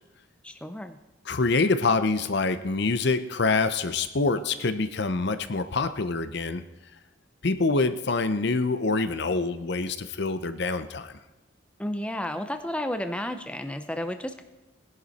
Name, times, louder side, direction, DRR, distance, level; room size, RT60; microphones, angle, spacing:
voice 1, 0.4-1.0 11.8-14.4, left 1 dB, 5° left, 8 dB, 0.6 m, -32 dB
voice 2, 1.3-6.6 7.4-11.1, left 3 dB, 60° left, 11 dB, 0.7 m, -26 dB
19.0 x 11.0 x 4.2 m, 1.1 s
head